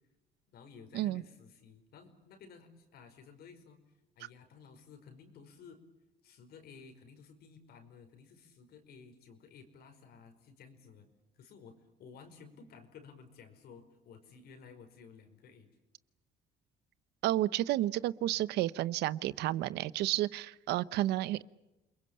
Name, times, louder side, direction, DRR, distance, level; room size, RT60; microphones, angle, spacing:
voice 1, 0.5-3.8 4.2-5.8 6.2-11.1 11.3-15.7 18.3-18.4, left 5 dB, 70° left, 7 dB, 5.1 m, -55 dB
voice 2, 17.2-21.4, right 15 dB, 80° right, 18 dB, 0.9 m, -31 dB
29.0 x 22.0 x 8.7 m, 0.95 s
cardioid pair, 110°, 17 cm